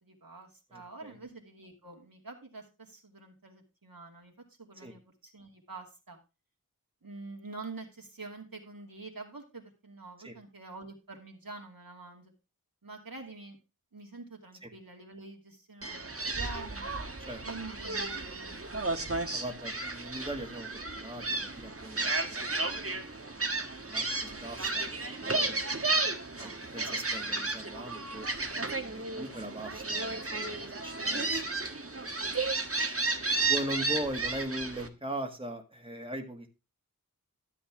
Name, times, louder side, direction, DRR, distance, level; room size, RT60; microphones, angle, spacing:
voice 1, 0.0-4.3 4.6-6.2 7.0-12.3 12.8-13.6 13.9-16.9 17.4-19.4 26.4-26.6, right 3 dB, 75° right, 1 dB, 2.6 m, -47 dB
voice 2, 0.7-1.2 4.8-4.9 10.2-10.3 14.6-14.7 17.2-17.4 19.3-20.7 21.0-25.6 26.4-32.4 33.5-36.5, right 1 dB, 15° right, 2 dB, 1.9 m, -41 dB
Gull seagull, 15.8-34.9, right 3 dB, 40° right, 1.4 m, -33 dB
13.5 x 7.9 x 3.6 m, 0.28 s
wide cardioid pair, 45°, 35 cm